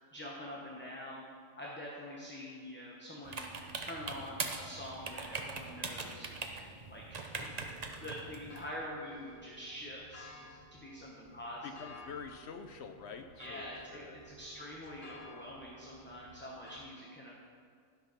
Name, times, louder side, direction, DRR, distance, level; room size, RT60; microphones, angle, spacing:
voice 1, 0.1-1.2 1.6-3.4 3.8-6.4 6.9-12.0 13.4-17.4, left 1 dB, 10° left, -4 dB, 0.9 m, -46 dB
sound 1, 3.2-8.7, right 4 dB, 40° right, 0.7 m, -41 dB
sound 2, 7.3-16.8, equal, 50° left, 1.6 m, -55 dB
voice 2, 11.6-14.2, left 6 dB, 65° left, 7 dB, 0.7 m, -47 dB
12.0 x 5.8 x 5.7 m, 2.1 s
omnidirectional pair, 1.4 m